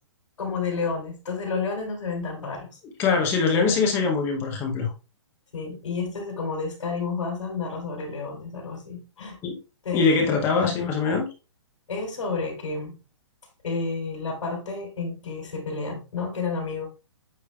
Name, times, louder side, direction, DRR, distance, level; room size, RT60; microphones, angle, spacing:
voice 1, 0.4-2.7 3.5-3.8 5.5-9.4 9.8-10.9 11.9-13.0 13.6-16.9, left 4 dB, 85° left, -1 dB, 3.3 m, -31 dB
voice 2, 3.0-4.9 9.4-9.6 9.9-11.3, left 4 dB, 15° left, 3 dB, 0.9 m, -23 dB
8.7 x 3.2 x 3.3 m, 0.30 s
hypercardioid pair, 170°, 16 cm